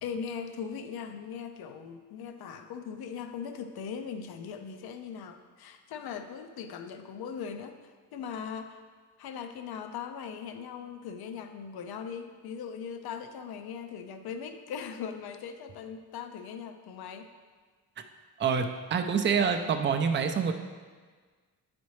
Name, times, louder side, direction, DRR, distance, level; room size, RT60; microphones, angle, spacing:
voice 1, 0.0-8.8 9.2-17.3, left 7 dB, 70° left, 7 dB, 0.6 m, -39 dB
voice 2, 18.4-20.5, right 6 dB, 30° right, 6 dB, 0.4 m, -26 dB
9.2 x 4.3 x 3.1 m, 1.5 s
cardioid pair, 95°, 39 cm